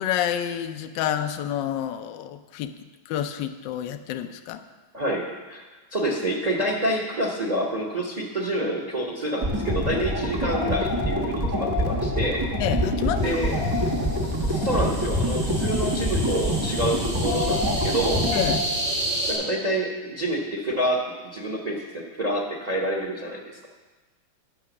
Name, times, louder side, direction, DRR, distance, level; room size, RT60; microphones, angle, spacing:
voice 1, 0.0-2.7 3.1-4.6 12.6-13.4 15.5-15.6 18.3-18.6, left 10 dB, 70° left, 8 dB, 1.2 m, -28 dB
voice 2, 4.9-5.7 5.9-12.4 13.2-13.6 14.5-18.2 19.3-23.7, right 1 dB, 80° right, 0 dB, 0.3 m, -28 dB
sound 1, 9.4-18.6, left 1 dB, 15° right, 0.8 m, -25 dB
sound 2, 13.2-19.3, right 1 dB, 60° right, 3.4 m, -31 dB
9.8 x 5.9 x 7.0 m, 1.3 s
omnidirectional pair, 2.3 m